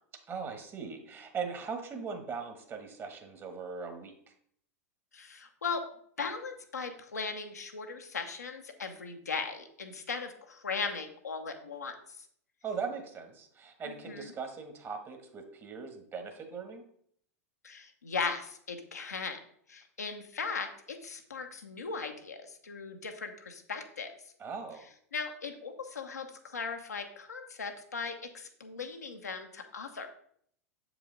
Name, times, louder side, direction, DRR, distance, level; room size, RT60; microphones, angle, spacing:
voice 1, 0.3-4.1 12.6-16.8 24.4-24.8, right 5 dB, 25° right, 6 dB, 1.2 m, -39 dB
voice 2, 5.1-5.8 6.2-11.9 14.1-14.3 17.6-19.4 19.7-24.1 25.1-30.1, left 5 dB, 85° left, 4 dB, 0.8 m, -38 dB
7.0 x 4.9 x 3.8 m, 0.64 s
hypercardioid pair, 95°, 9 cm